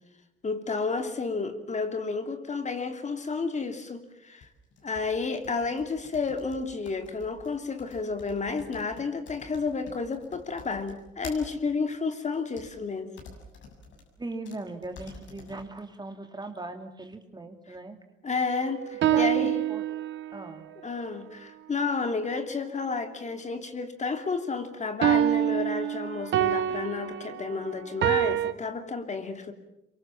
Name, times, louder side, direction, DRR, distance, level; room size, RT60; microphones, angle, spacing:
voice 1, 0.4-4.5 4.8-13.1 18.2-19.6 20.8-29.5, left 4 dB, 35° left, 6 dB, 3.0 m, -31 dB
sound 1, 4.4-11.6 12.3-12.7 13.2-14.1 14.4-14.6 14.8-15.6, left 4 dB, 70° left, 7.1 m, -48 dB
voice 2, 14.2-18.0 19.1-19.8 20.3-20.7, right 2 dB, 20° right, 5 dB, 3.0 m, -39 dB
sound 2, 18.6-20.4 25.0-28.5, right 11 dB, 70° right, 1.2 m, -26 dB
26.5 x 23.5 x 7.5 m, 0.85 s
cardioid pair, 90°, 20 cm